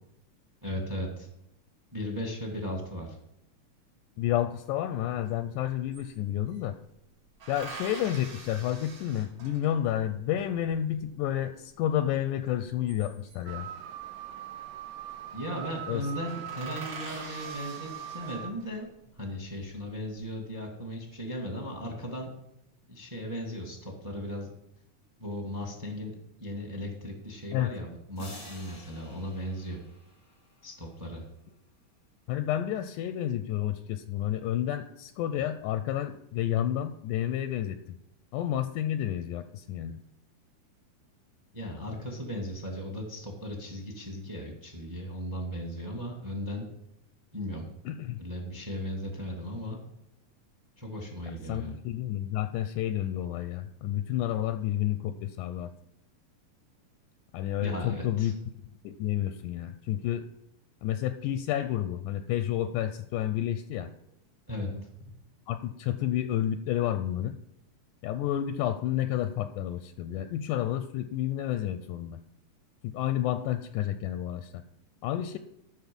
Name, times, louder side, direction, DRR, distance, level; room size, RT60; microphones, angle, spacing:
voice 1, 0.6-1.3 1.9-3.2 15.3-18.9 19.1-22.3 22.9-24.5 25.2-26.1 26.4-29.8 30.6-31.2 41.5-46.6 47.3-47.7 48.2-49.8 50.8-51.8 57.6-58.3 64.5-65.1, equal, 10° right, 2 dB, 0.8 m, -37 dB
voice 2, 4.2-6.8 7.5-13.7 15.9-16.0 27.5-27.7 32.3-37.8 38.3-40.0 47.9-48.2 51.5-55.7 57.3-58.3 58.8-60.3 60.8-63.9 65.5-67.4 68.0-72.2 72.8-74.6 75.0-75.4, left 11 dB, 80° left, 11 dB, 1.9 m, -30 dB
sound 1, 5.3-5.4 5.6-6.7 7.4-9.9 12.6-13.6 14.7-15.1 15.4-15.6 15.9-16.0 16.2-18.8 19.4-20.0, right 4 dB, 45° right, 2.9 m, -45 dB
sound 2, 13.5-18.5, right 10 dB, 75° right, 1.9 m, -41 dB
sound 3, 28.2-30.9, left 2 dB, 20° left, 1.0 m, -49 dB
13.5 x 6.0 x 5.3 m, 0.83 s
omnidirectional pair, 4.0 m